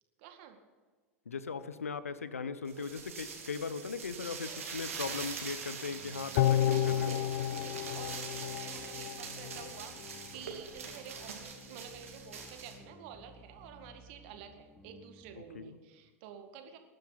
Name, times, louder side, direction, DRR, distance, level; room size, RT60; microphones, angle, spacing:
voice 1, 0.2-0.6 4.5-4.7 6.7-16.8, right 8 dB, 50° right, 7 dB, 2.0 m, -50 dB
voice 2, 1.3-7.2 15.5-15.8, left 5 dB, 80° left, 14 dB, 0.8 m, -39 dB
sound 1, 2.7-12.8, right 6 dB, 70° right, 2.5 m, -43 dB
sound 2, 6.4-9.7 10.1-10.2, left 11 dB, 50° left, 0.5 m, -31 dB
sound 3, 8.3-15.4, left 1 dB, 10° left, 2.7 m, -57 dB
19.5 x 12.0 x 4.1 m, 1.5 s
figure-of-eight pair, 85°, 8 cm